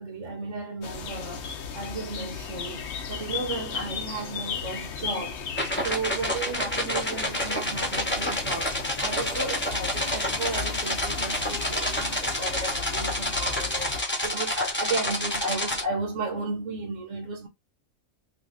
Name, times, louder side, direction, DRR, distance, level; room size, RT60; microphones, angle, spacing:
voice 1, 0.0-5.4 5.8-8.7 9.0-17.5, right 3 dB, 65° right, 1.4 m, -34 dB
sound 1, 0.8-14.0, left 6 dB, 65° left, 1.0 m, -36 dB
sound 2, 5.6-15.8, left 1 dB, 10° left, 0.8 m, -29 dB
3.3 x 2.2 x 3.9 m
omnidirectional pair, 1.3 m